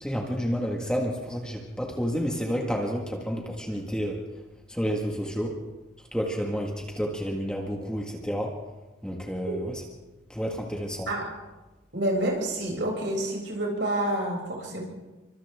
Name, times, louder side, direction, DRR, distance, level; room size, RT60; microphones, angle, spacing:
voice 1, 0.0-4.2 4.7-5.6 6.1-8.5 9.0-9.8 10.3-11.1, equal, 5° left, 0 dB, 1.8 m, -30 dB
voice 2, 11.9-14.8, right 1 dB, 60° right, -2 dB, 7.2 m, -28 dB
29.0 x 24.5 x 3.7 m, 1.1 s
head